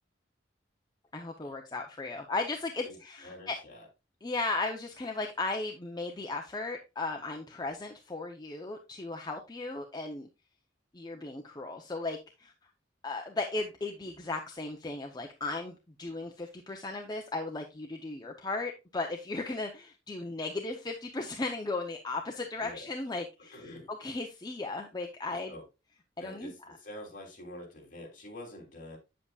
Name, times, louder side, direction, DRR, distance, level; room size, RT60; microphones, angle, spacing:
voice 1, 1.1-3.6 4.2-10.3 10.9-12.5 13.0-23.5 24.0-25.5 26.2-26.5, left 3 dB, 20° left, 0.7 m, -36 dB
voice 2, 2.8-3.9 22.6-22.9 23.5-23.9 25.5-25.6 26.2-29.0, left 1 dB, 45° left, 3.0 m, -46 dB
8.2 x 7.7 x 2.3 m
head